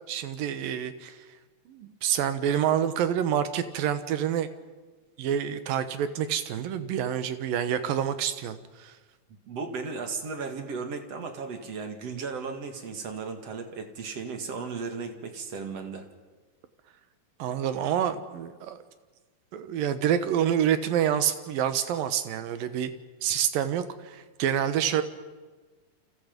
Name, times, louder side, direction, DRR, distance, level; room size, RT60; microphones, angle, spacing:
voice 1, 0.1-1.2 1.7-4.5 5.2-8.9 17.4-18.8 19.5-22.9 23.2-25.0, right 9 dB, 80° right, 11 dB, 3.0 m, -27 dB
voice 2, 9.5-16.1, right 4 dB, 50° right, 6 dB, 2.7 m, -35 dB
29.0 x 26.5 x 5.3 m, 1.3 s
omnidirectional pair, 4.0 m